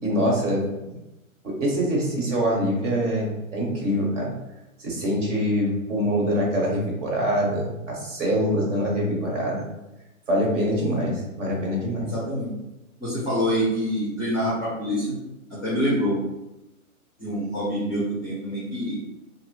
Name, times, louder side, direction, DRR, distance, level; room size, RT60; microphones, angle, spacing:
voice 1, 0.0-0.9 1.4-4.3 4.8-9.6 10.3-12.1, equal, 55° right, -3 dB, 1.2 m, -24 dB
voice 2, 12.1-12.5 13.0-15.2 15.5-16.2 17.2-19.0, equal, 20° left, -8 dB, 0.4 m, -26 dB
2.9 x 2.1 x 2.9 m, 0.96 s
hypercardioid pair, 150°, 43 cm